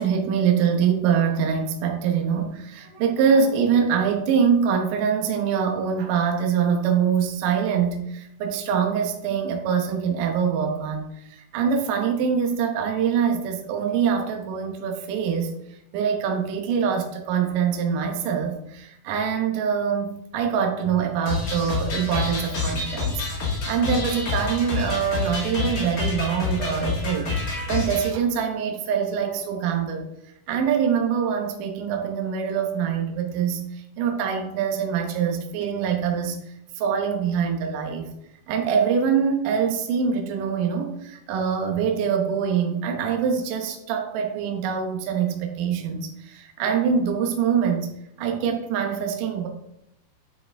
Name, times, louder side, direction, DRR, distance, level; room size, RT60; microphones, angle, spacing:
voice 1, 0.0-15.5 15.9-30.0 30.5-36.4 36.8-38.1 38.5-47.9 48.2-49.5, right 7 dB, 70° right, 3 dB, 2.4 m, -24 dB
sound 1, 21.3-28.1, left 4 dB, 40° left, 1.5 m, -28 dB
9.5 x 4.8 x 3.4 m, 0.80 s
omnidirectional pair, 4.3 m